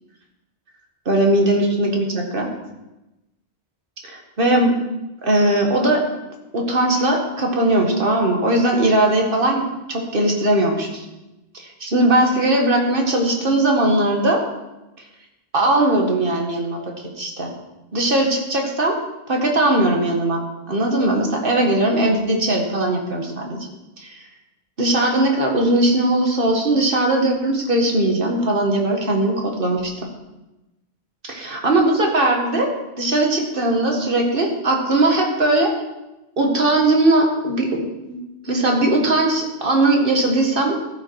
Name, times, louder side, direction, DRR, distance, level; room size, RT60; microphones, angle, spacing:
voice 1, 1.1-2.5 4.0-4.8 5.2-6.0 6.5-11.0 11.5-14.4 15.5-16.8 17.2-17.5 17.9-19.0 19.3-20.4 20.7-23.7 24.0-24.2 24.8-29.9 31.3-35.7 36.4-38.2 38.4-40.8, right 1 dB, 50° right, 1 dB, 1.8 m, -19 dB
14.0 x 5.9 x 4.7 m, 0.98 s
omnidirectional pair, 1.2 m